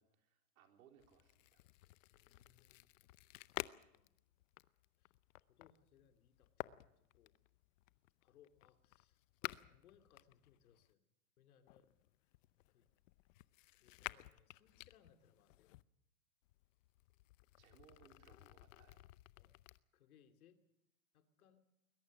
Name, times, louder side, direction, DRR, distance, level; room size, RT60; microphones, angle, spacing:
voice 1, 0.0-1.6 17.6-19.0, right 8 dB, 75° right, 4 dB, 3.9 m, -67 dB
sound 1, 1.0-10.9 11.7-15.8 16.4-19.8, left 18 dB, 60° left, 0.8 m, -53 dB
voice 2, 2.1-2.9 3.5-3.7 3.9-4.1 5.0-5.1 5.5-7.3 8.2-9.2 9.4-11.0 11.4-11.9 12.7-12.9 13.7-15.7 19.4-19.6 19.9-20.6 21.1-21.6, left 9 dB, 85° left, 7 dB, 2.7 m, -70 dB
21.0 x 21.0 x 6.2 m, 0.81 s
supercardioid pair, 145°, 42 cm